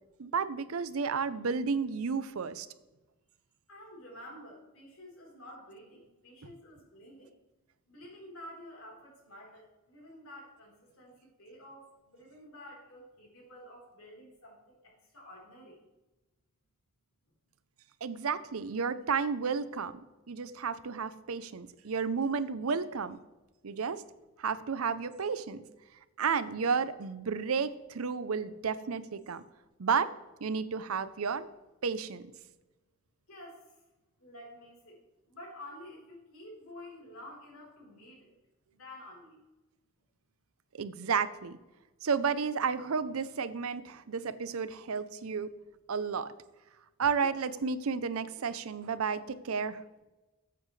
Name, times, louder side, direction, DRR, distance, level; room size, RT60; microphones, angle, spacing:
voice 1, 0.2-2.7 18.0-19.9 20.3-23.2 23.6-24.0 24.4-25.6 26.2-29.4 29.8-30.1 30.4-31.5 31.8-32.2 40.7-41.6 42.0-45.5 45.9-46.3 47.0-49.8, right 5 dB, 90° right, 14 dB, 0.6 m, -32 dB
voice 2, 3.7-7.3 7.9-15.8 20.2-20.3 21.3-21.4 21.8-21.9 32.5-32.6 33.3-33.8 34.2-38.3 38.7-39.4 47.2-47.3, left 1 dB, 85° left, -2 dB, 4.0 m, -50 dB
14.5 x 7.9 x 3.2 m, 1.1 s
head